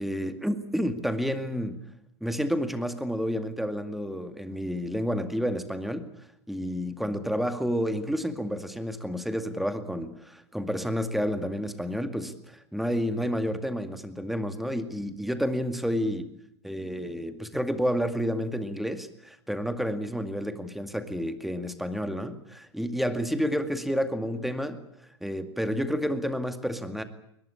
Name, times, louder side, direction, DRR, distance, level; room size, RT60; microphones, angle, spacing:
voice 1, 0.0-1.8 2.2-6.1 6.5-16.3 16.6-24.8 25.2-27.0, equal, ahead, 8 dB, 2.2 m, -30 dB
21.5 x 21.0 x 8.6 m, 0.77 s
hypercardioid pair, 95°, 14 cm